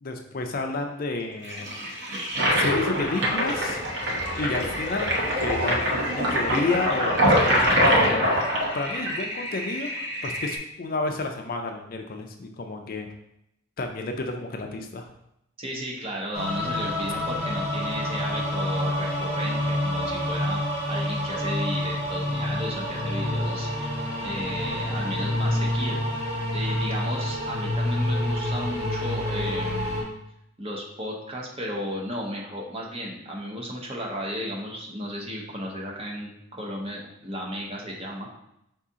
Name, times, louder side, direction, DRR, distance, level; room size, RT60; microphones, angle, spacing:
voice 1, 0.0-1.9 2.5-3.8 4.4-8.5 8.7-9.9 10.2-13.1 13.8-15.1, left 3 dB, 45° left, 4 dB, 0.4 m, -31 dB
Toilet flush, 1.4-10.6, equal, 55° right, 0.9 m, -24 dB
voice 2, 15.6-20.6 20.9-24.0 24.2-26.0 26.5-30.0 30.6-38.3, equal, 30° right, -2 dB, 0.8 m, -34 dB
sound 1, 16.3-30.0, left 1 dB, 80° right, 1.5 m, -28 dB
4.8 x 2.8 x 3.6 m, 0.79 s
head